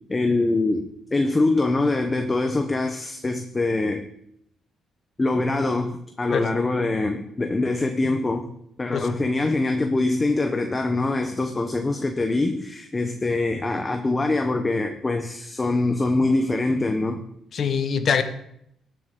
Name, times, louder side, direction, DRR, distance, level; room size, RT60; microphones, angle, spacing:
voice 1, 0.1-4.1 5.2-8.5 8.8-17.2, left 2 dB, 25° left, 0.9 m, -24 dB
voice 2, 17.5-18.2, left 6 dB, 55° left, 1.2 m, -23 dB
16.5 x 7.7 x 3.9 m
cardioid pair, 90°, 0 cm